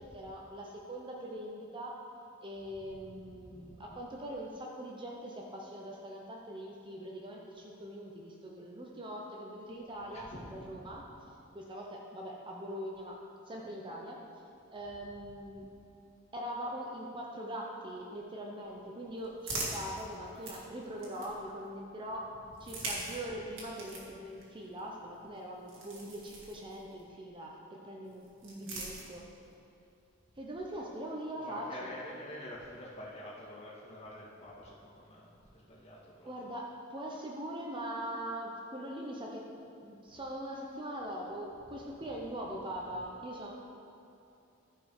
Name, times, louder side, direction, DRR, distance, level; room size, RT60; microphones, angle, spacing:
voice 1, 0.0-2.0 2.4-11.0 11.5-13.2 13.5-14.2 14.7-15.7 16.3-22.3 22.6-29.2 30.4-31.9 36.2-39.4 39.8-43.5, right 1 dB, 25° right, -1 dB, 0.8 m, -42 dB
voice 2, 3.2-3.8 10.1-10.4 10.8-11.0 22.6-22.9 31.4-36.5 41.7-41.8, left 1 dB, 35° left, -7 dB, 2.5 m, -48 dB
sound 1, 18.6-21.7 22.5-27.1 28.0-29.5, right 2 dB, 70° right, 2.1 m, -44 dB
14.5 x 5.2 x 4.9 m, 2.7 s
head